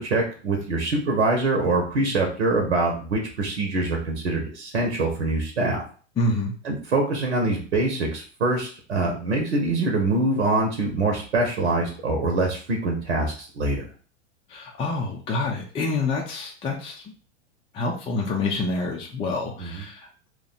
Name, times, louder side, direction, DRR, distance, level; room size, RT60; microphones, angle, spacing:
voice 1, 0.0-5.8 6.6-13.8 19.6-19.8, right 2 dB, 70° right, 2 dB, 1.0 m, -24 dB
voice 2, 6.2-6.5 14.5-17.0 17.7-20.3, left 3 dB, 15° left, -1 dB, 0.5 m, -27 dB
3.0 x 2.3 x 4.1 m, 0.40 s
figure-of-eight pair, 95°, 36 cm